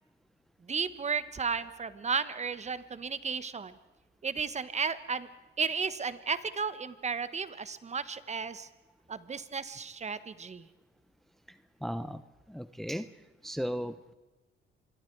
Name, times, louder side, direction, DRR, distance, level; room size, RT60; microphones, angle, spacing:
voice 1, 0.7-3.7 4.2-5.3 5.6-8.7 9.1-10.7, right 5 dB, 35° right, 14 dB, 1.3 m, -33 dB
voice 2, 11.8-12.2 12.5-13.1 13.4-14.1, equal, ahead, 12 dB, 0.8 m, -35 dB
26.0 x 22.5 x 4.7 m, 1.2 s
cardioid pair, 90°, 20 cm